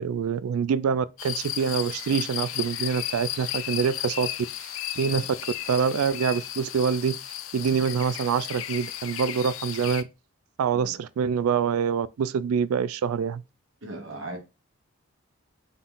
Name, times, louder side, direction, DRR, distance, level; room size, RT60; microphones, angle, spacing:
voice 1, 0.0-4.3 4.6-5.2 5.7-7.2 7.5-10.0 10.6-13.4, right 6 dB, 90° right, 0.3 m, -25 dB
sound 1, 1.2-10.0, left 12 dB, 70° left, 0.4 m, -34 dB
voice 2, 13.8-14.4, right 2 dB, 65° right, 1.5 m, -38 dB
3.9 x 3.6 x 2.5 m
head